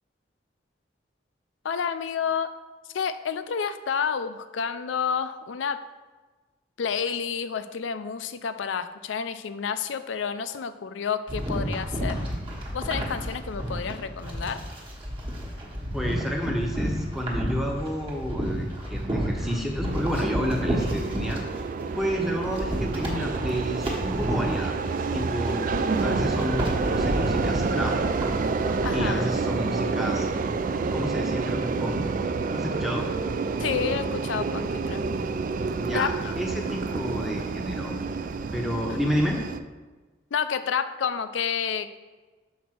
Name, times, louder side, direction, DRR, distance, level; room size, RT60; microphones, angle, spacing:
voice 1, 1.6-2.5 2.9-5.8 6.8-12.2 12.7-14.6 28.8-29.3 33.6-35.0 35.9-36.3 40.3-42.0, left 6 dB, 85° left, 11 dB, 0.5 m, -29 dB
sound 1, 11.3-21.4 21.8-29.1, equal, 30° right, 1.2 m, -31 dB
voice 2, 15.9-21.4 22.0-24.8 25.1-25.6 26.0-27.9 28.9-30.3 30.9-32.0 32.5-33.1 35.8-37.9 38.5-39.4, equal, ahead, 0 dB, 0.8 m, -30 dB
sound 2, 19.9-39.6, right 4 dB, 45° right, 0.3 m, -28 dB
6.1 x 4.1 x 6.1 m, 1.3 s
head